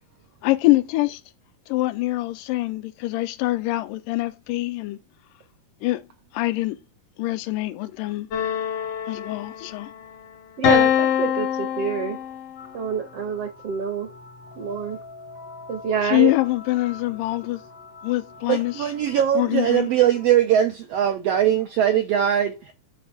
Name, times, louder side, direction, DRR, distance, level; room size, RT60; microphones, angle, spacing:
voice 1, 0.4-1.2 1.7-5.0 5.8-6.0 6.3-6.8 7.2-8.3 9.1-9.9 16.0-17.6 18.0-18.9 19.4-19.9, left 18 dB, 85° left, 2.1 m, -24 dB
sound 1, 8.3-10.0 10.6-12.6, left 9 dB, 70° left, 1.5 m, -24 dB
voice 2, 10.6-12.2 12.7-14.1 14.6-15.0 15.7-16.3, right 6 dB, 65° right, 1.5 m, -27 dB
sound 2, 12.6-20.3, left 3 dB, 50° left, 0.6 m, -44 dB
voice 3, 18.5-22.7, right 10 dB, 90° right, 1.4 m, -21 dB
7.7 x 4.3 x 4.7 m
omnidirectional pair, 3.8 m